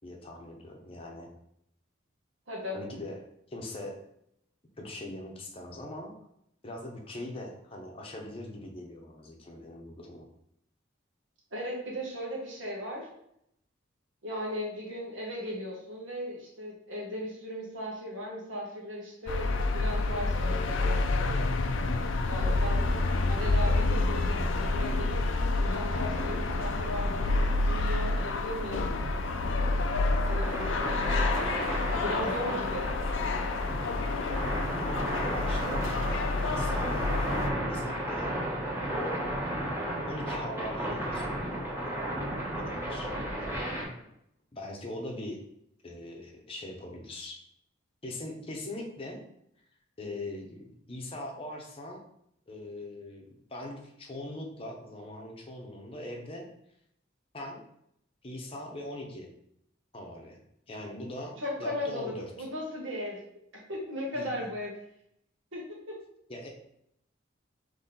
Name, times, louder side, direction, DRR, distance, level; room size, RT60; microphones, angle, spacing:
voice 1, 0.0-1.3 2.7-4.0 4.8-6.1 6.6-10.3 22.4-22.6 34.7-37.1 37.7-38.3 38.6-39.0 40.1-41.6 42.6-43.1 43.4-43.7 44.5-45.4 45.8-47.4 48.0-49.2 50.0-52.0 52.5-56.4 57.3-57.6 58.2-59.3 59.9-60.4 60.7-62.5 64.1-64.5 66.3-66.5, left 1 dB, 30° left, 0 dB, 0.8 m, -41 dB
voice 2, 2.5-2.8 11.5-13.1 14.2-21.0 22.3-22.9 23.3-25.2 25.6-27.3 27.6-28.9 30.2-30.9 32.0-32.9 61.4-63.2 63.7-64.7 65.5-65.9, left 1 dB, 75° right, -3 dB, 1.5 m, -37 dB
sound 1, 19.3-37.5, left 2 dB, 75° left, 0.4 m, -28 dB
sound 2, 25.5-43.8, right 1 dB, 10° right, 1.0 m, -34 dB
4.2 x 3.1 x 3.8 m, 0.76 s
head